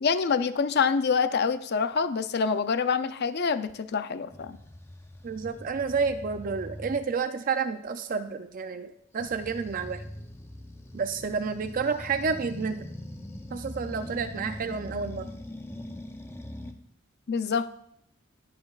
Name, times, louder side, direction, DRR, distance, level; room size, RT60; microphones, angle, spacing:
voice 1, 0.0-4.6 17.3-17.8, left 5 dB, 55° left, 11 dB, 0.5 m, -26 dB
sound 1, 4.3-7.1 9.2-16.7, left 1 dB, 15° left, 0.6 m, -42 dB
voice 2, 5.2-10.0 10.9-12.9 13.5-15.3, right 5 dB, 40° right, 9 dB, 0.4 m, -30 dB
19.5 x 6.8 x 2.4 m, 0.74 s
head